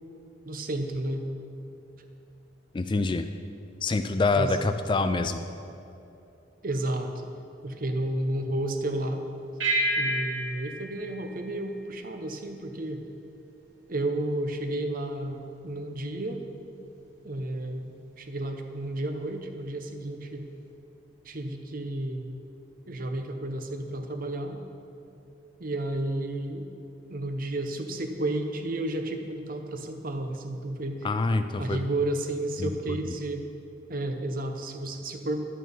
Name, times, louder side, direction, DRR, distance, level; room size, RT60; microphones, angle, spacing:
voice 1, 0.4-1.2 4.4-4.6 6.6-7.1 7.6-9.2 10.0-13.0 13.9-16.4 17.2-20.5 21.2-22.3 22.9-24.6 25.6-26.7 27.1-31.1 31.6-33.5 33.9-35.5, right 1 dB, 45° right, 6 dB, 0.8 m, -32 dB
voice 2, 2.7-3.3 3.8-5.4 31.0-31.8 32.6-32.7, left 3 dB, 25° left, 9 dB, 0.3 m, -26 dB
sound 1, 9.6-12.4, right 1 dB, 85° right, 2.6 m, -30 dB
11.0 x 8.5 x 5.4 m, 2.7 s
head